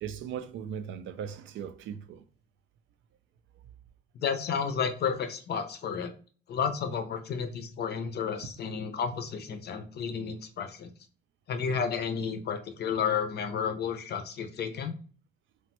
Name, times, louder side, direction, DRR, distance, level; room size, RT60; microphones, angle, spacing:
voice 1, 0.0-2.2 8.4-8.5, right 8 dB, 75° right, 0.4 m, -38 dB
voice 2, 4.2-6.1 6.5-10.9 11.5-14.9, left 6 dB, 55° left, 0.5 m, -32 dB
3.0 x 2.1 x 2.9 m
cardioid pair, 90°, 20 cm